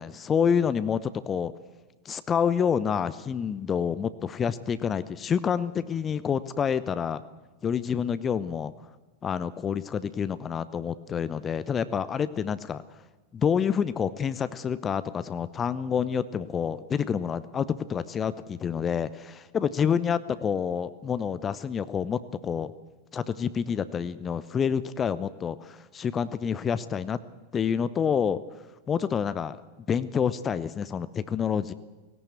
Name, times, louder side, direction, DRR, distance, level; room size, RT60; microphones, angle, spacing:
voice 1, 0.0-1.5 2.0-7.2 7.6-8.7 9.2-12.8 13.3-22.7 23.1-27.2 27.5-28.4 28.9-29.6 29.9-31.7, left 7 dB, 20° left, 15 dB, 0.8 m, -28 dB
18.0 x 17.5 x 8.5 m, 1.2 s
figure-of-eight pair, 90°, 0 cm